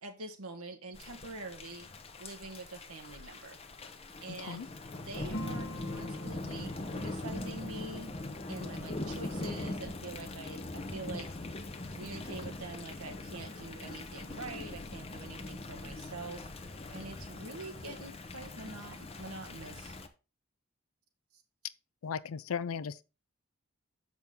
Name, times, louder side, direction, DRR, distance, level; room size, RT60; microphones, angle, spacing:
voice 1, 0.0-1.9 2.2-3.6 4.2-4.7 4.9-11.4 11.9-16.5 16.9-19.9, right 2 dB, 90° right, 1.5 m, -45 dB
Thunder / Rain, 0.9-20.1, left 2 dB, 25° left, 0.7 m, -42 dB
sound 1, 5.3-10.2, left 1 dB, 50° left, 1.0 m, -45 dB
voice 2, 22.0-23.0, left 6 dB, 75° left, 0.4 m, -36 dB
7.2 x 6.1 x 3.6 m
head